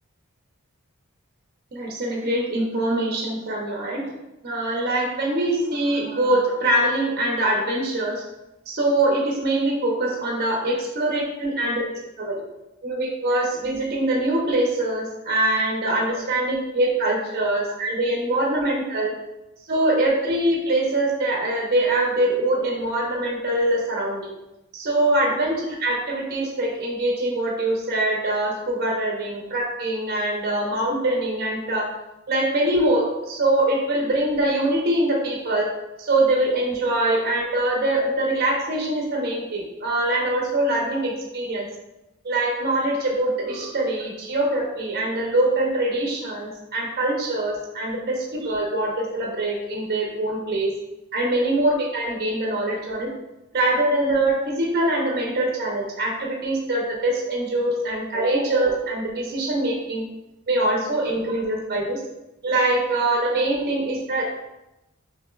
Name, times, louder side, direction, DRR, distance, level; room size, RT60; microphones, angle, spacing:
voice 1, 1.7-4.1 4.4-8.2 8.7-11.9 12.2-12.4 12.8-19.1 19.7-24.3 24.7-31.9 32.3-35.7 36.0-41.7 42.2-50.7 51.1-53.1 53.5-60.1 60.5-62.0 62.4-64.2, right 1 dB, 45° right, -1 dB, 0.7 m, -23 dB
6.0 x 2.9 x 2.3 m, 0.94 s
head